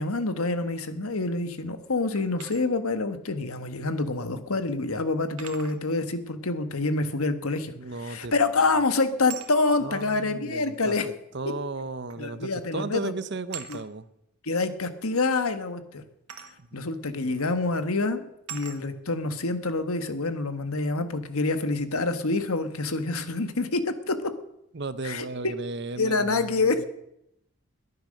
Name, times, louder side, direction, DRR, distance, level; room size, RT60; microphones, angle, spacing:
voice 1, 0.0-7.7 8.0-11.1 12.2-13.1 13.7-13.8 14.4-16.0 16.7-24.2 25.0-25.5 26.0-26.9, left 3 dB, 75° left, 10 dB, 1.5 m, -27 dB
sound 1, 2.1-2.6 4.1-4.2 5.4-5.8 8.1-8.4 9.3-9.5 10.7-10.8 12.1-12.3 12.6-12.9 13.5-13.9 16.3-16.6 17.4-17.5 18.5-18.8, right 8 dB, 80° right, 1.8 m, -41 dB
voice 2, 7.8-8.3 9.8-10.9 11.3-14.1 16.6-16.8 17.2-17.3 24.7-26.8, right 3 dB, 50° right, 14 dB, 0.8 m, -35 dB
22.0 x 9.5 x 6.5 m, 0.82 s
head